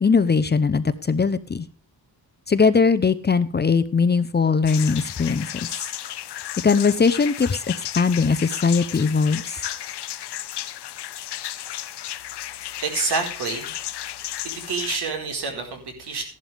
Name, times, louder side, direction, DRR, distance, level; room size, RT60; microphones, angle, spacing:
voice 1, 0.0-1.6 2.5-5.5 6.6-9.6, left 5 dB, 25° left, 13 dB, 0.7 m, -20 dB
sound 1, 4.7-15.0, left 12 dB, 85° left, 0.9 m, -33 dB
voice 2, 12.8-13.7 14.4-16.2, right 4 dB, 80° right, 2 dB, 4.4 m, -28 dB
14.5 x 11.5 x 3.4 m, 0.37 s
wide cardioid pair, 140°, 39 cm